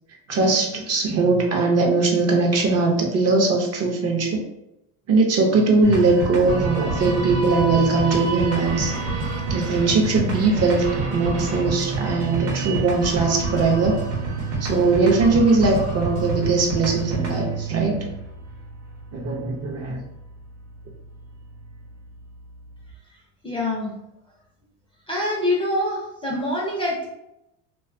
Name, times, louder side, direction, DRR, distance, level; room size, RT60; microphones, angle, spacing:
voice 1, 0.3-4.4 5.1-8.9 9.5-14.0 14.6-18.1 19.1-20.0, right 3 dB, 35° right, 1 dB, 0.5 m, -20 dB
sound 1, 5.8-22.9, right 3 dB, 75° right, 0.9 m, -28 dB
voice 2, 23.4-23.9 25.1-27.1, left 1 dB, 15° left, -4 dB, 0.4 m, -25 dB
2.5 x 2.3 x 2.4 m, 0.84 s
supercardioid pair, 115°, 44 cm